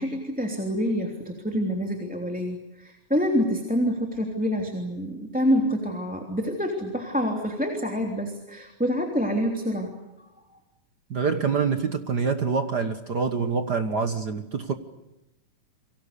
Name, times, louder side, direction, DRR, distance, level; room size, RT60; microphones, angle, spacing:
voice 1, 0.0-10.3, equal, 5° right, 2 dB, 2.8 m, -27 dB
voice 2, 11.1-14.7, right 5 dB, 55° right, 8 dB, 1.2 m, -26 dB
29.5 x 25.0 x 6.8 m, 0.96 s
omnidirectional pair, 3.6 m